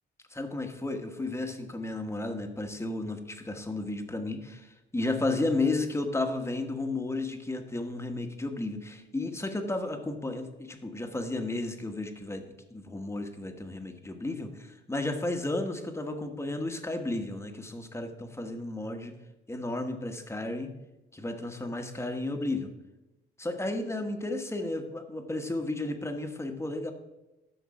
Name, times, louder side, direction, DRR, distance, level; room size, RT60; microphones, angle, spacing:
voice 1, 0.3-12.4 12.7-19.1 19.5-20.8 21.1-22.7 23.4-26.9, left 2 dB, 15° left, 5 dB, 1.3 m, -33 dB
11.5 x 6.5 x 4.9 m, 1.0 s
cardioid pair, 90°, 20 cm